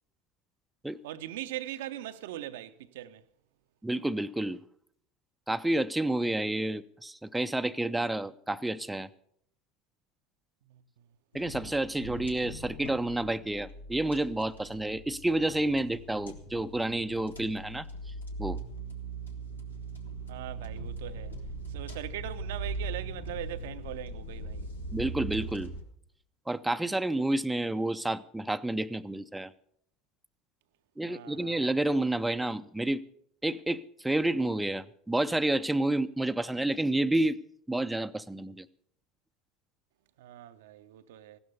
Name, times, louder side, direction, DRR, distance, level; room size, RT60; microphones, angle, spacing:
voice 1, 1.0-3.2 20.3-21.3 21.7-24.6 31.0-31.8 40.2-41.4, right 13 dB, 65° right, 0.6 m, -41 dB
voice 2, 3.8-4.6 5.5-9.1 11.3-17.9 18.4-18.6 24.9-25.7 26.5-29.5 31.0-33.0 33.4-37.4 37.7-38.6, right 1 dB, 5° right, 0.5 m, -30 dB
sound 1, 11.3-25.8, right 3 dB, 80° left, 1.4 m, -40 dB
15.5 x 12.5 x 5.4 m
figure-of-eight pair, 70°, 0 cm